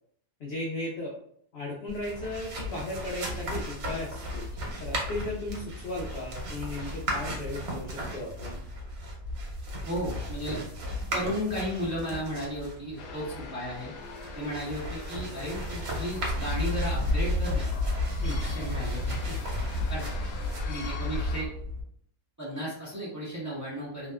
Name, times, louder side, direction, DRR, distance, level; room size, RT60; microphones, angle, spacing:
voice 1, 0.4-1.2 1.5-8.6 13.5-13.6 18.2-18.4, left 2 dB, 65° left, -3 dB, 0.6 m, -36 dB
sound 1, 1.9-21.8, left 1 dB, 85° right, 1.2 m, -33 dB
voice 2, 9.8-10.6 11.1-13.9 14.3-17.7 18.4-19.4 19.9-20.1 20.6-21.5 22.4-24.1, equal, 15° right, -9 dB, 0.8 m, -34 dB
sound 2, 13.0-21.4, left 4 dB, 80° left, 1.0 m, -44 dB
2.7 x 2.1 x 2.2 m, 0.66 s
omnidirectional pair, 1.5 m